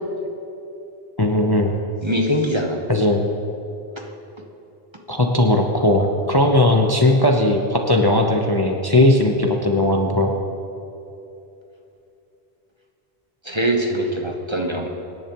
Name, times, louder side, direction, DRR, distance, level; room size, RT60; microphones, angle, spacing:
voice 1, 1.2-1.8 2.9-3.2 5.1-10.3, left 1 dB, 25° left, 2 dB, 0.8 m, -18 dB
voice 2, 2.0-2.8 13.4-14.9, equal, 25° right, 1 dB, 1.1 m, -22 dB
25.0 x 10.5 x 3.0 m, 2.8 s
omnidirectional pair, 1.1 m